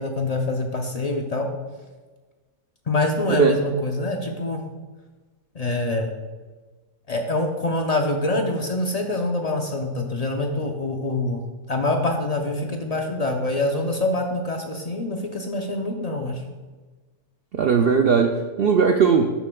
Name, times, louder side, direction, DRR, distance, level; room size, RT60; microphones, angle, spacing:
voice 1, 0.0-1.5 2.9-4.6 5.5-6.1 7.1-11.4 11.7-16.4, left 2 dB, 60° left, 2 dB, 0.4 m, -25 dB
voice 2, 17.5-19.3, right 6 dB, 75° right, 4 dB, 0.5 m, -18 dB
12.0 x 7.1 x 2.3 m, 1.3 s
omnidirectional pair, 1.5 m